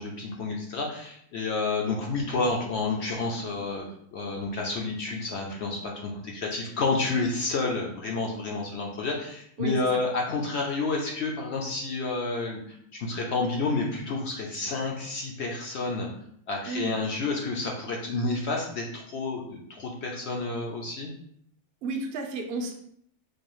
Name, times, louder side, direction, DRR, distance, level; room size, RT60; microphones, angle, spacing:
voice 1, 0.0-3.9 4.1-16.1 16.5-21.1, left 3 dB, 65° left, -1 dB, 0.7 m, -30 dB
voice 2, 9.6-10.0 16.6-16.9 21.8-22.7, right 3 dB, 60° right, 3 dB, 0.6 m, -32 dB
4.6 x 2.3 x 3.0 m, 0.68 s
omnidirectional pair, 1.6 m